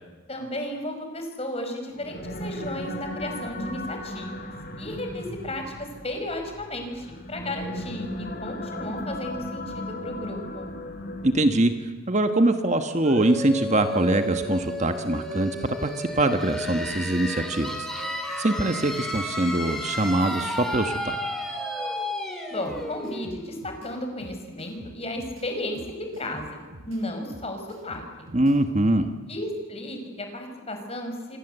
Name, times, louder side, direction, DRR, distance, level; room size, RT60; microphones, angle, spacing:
voice 1, 0.3-4.5 4.8-10.7 22.5-25.8 26.2-28.0 29.3-31.4, left 1 dB, 30° left, 5 dB, 5.4 m, -34 dB
sound 1, 1.9-11.8, left 1 dB, 45° left, 2.6 m, -36 dB
voice 2, 11.2-11.7 12.1-21.2 28.3-29.1, right 1 dB, 35° right, 7 dB, 1.3 m, -23 dB
sound 2, 13.0-24.6, left 1 dB, ahead, 4.0 m, -33 dB
sound 3, 22.6-28.6, right 1 dB, 70° right, 4.9 m, -48 dB
27.0 x 25.5 x 8.1 m, 1.4 s
head